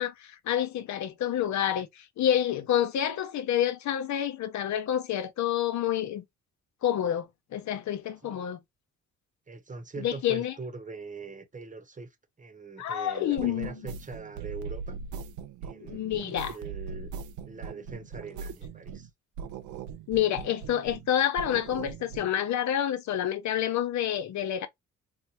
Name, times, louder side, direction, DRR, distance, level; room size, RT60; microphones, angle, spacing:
voice 1, 0.0-6.2 6.8-8.6 10.0-10.5 12.8-13.7 15.8-16.6 20.1-24.7, left 10 dB, 70° left, 0.7 m, -28 dB
voice 2, 9.5-15.0 15.6-17.1 17.5-19.1, right 4 dB, 25° right, 1.0 m, -42 dB
sound 1, 13.4-19.1 19.4-21.1 21.4-22.3, right 6 dB, 75° right, 0.5 m, -40 dB
4.1 x 2.1 x 2.8 m
cardioid pair, 90°, 30 cm